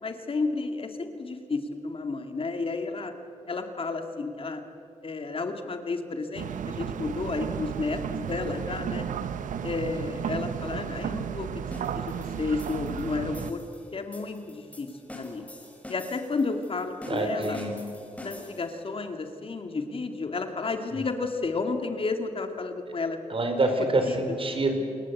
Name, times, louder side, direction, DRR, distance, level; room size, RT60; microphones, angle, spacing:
voice 1, 0.0-3.1 3.5-4.6 5.0-9.1 9.6-11.6 11.9-13.6 13.9-14.9 15.2-15.4 15.9-17.6 18.2-23.2 23.8-24.4, left 3 dB, 45° left, 6 dB, 2.4 m, -32 dB
sound 1, 6.4-13.5, right 8 dB, 85° right, 1.0 m, -33 dB
sound 2, 11.7-18.8, left 1 dB, 10° left, 6.4 m, -46 dB
voice 2, 17.1-17.7 20.9-21.0 23.3-24.8, right 2 dB, 45° right, 5 dB, 4.9 m, -26 dB
28.0 x 22.0 x 8.5 m, 2.6 s
cardioid pair, 75°, 13 cm